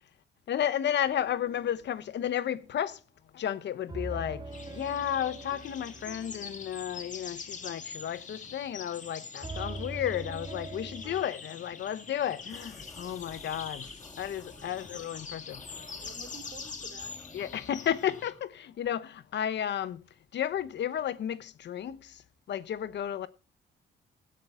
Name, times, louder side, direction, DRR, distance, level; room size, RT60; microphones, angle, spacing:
voice 1, 0.5-3.0 3.3-13.9 14.2-15.6 17.3-20.0 20.3-22.2 22.5-23.3, left 10 dB, 60° left, 0.9 m, -33 dB
sound 1, 1.1-1.6 3.9-8.7 9.4-11.2, right 2 dB, 20° right, 2.2 m, -43 dB
sound 2, 4.5-18.3, left 5 dB, 40° left, 2.0 m, -44 dB
sound 3, 12.4-18.5, left 2 dB, 15° left, 1.4 m, -53 dB
voice 2, 15.9-17.4, right 5 dB, 55° right, 3.7 m, -51 dB
17.0 x 8.5 x 3.6 m
cardioid pair, 90°, 20 cm